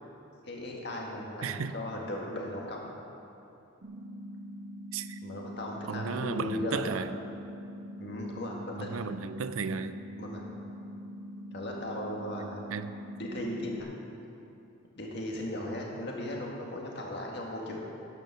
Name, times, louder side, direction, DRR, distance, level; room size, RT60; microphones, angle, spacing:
voice 1, 0.4-2.9 5.2-6.9 8.0-8.9 10.2-10.4 11.5-12.6 13.2-13.9 15.0-17.8, left 1 dB, 55° left, -1 dB, 1.9 m, -37 dB
voice 2, 1.4-1.7 4.9-5.2 5.9-7.1 8.8-10.0 12.7-12.9, right 5 dB, 85° right, 12 dB, 0.5 m, -34 dB
sound 1, 3.8-13.8, equal, 60° right, 1.2 m, -43 dB
11.0 x 9.3 x 6.1 m, 2.7 s
head